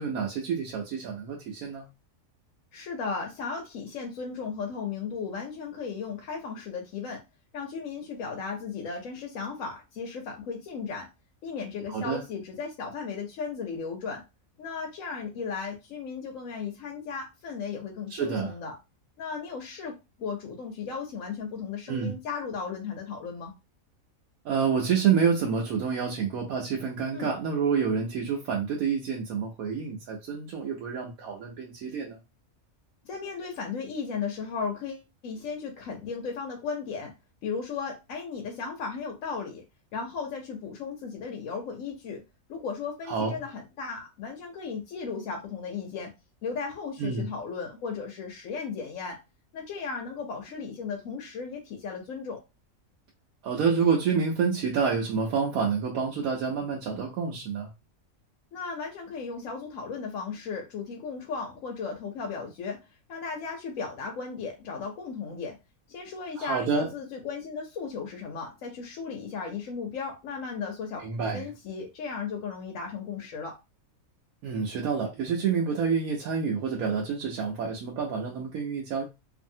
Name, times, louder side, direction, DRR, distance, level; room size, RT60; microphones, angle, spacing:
voice 1, 0.0-1.9 11.9-12.2 18.1-18.5 21.9-22.2 24.4-32.2 43.1-43.4 47.0-47.3 53.4-57.7 66.4-66.9 71.0-71.4 74.4-79.0, right 6 dB, 80° right, -1 dB, 1.1 m, -28 dB
voice 2, 2.7-7.2 7.5-11.1 11.4-14.2 14.6-18.8 19.2-23.5 27.1-27.3 33.0-37.1 37.4-39.6 39.9-42.2 42.5-46.1 46.4-49.2 49.5-52.4 58.5-62.8 63.1-65.6 65.9-71.0 71.3-73.6, left 5 dB, 70° left, 2 dB, 1.0 m, -35 dB
2.6 x 2.6 x 2.6 m, 0.25 s
omnidirectional pair, 1.5 m